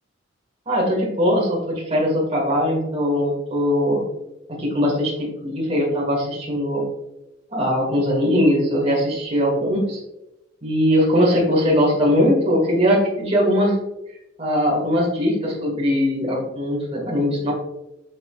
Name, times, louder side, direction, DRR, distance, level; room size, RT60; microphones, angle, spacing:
voice 1, 0.7-4.0 4.5-6.8 7.5-10.0 10.6-13.8 14.4-17.5, equal, 30° right, -2 dB, 1.9 m, -20 dB
7.5 x 5.9 x 2.4 m, 0.90 s
head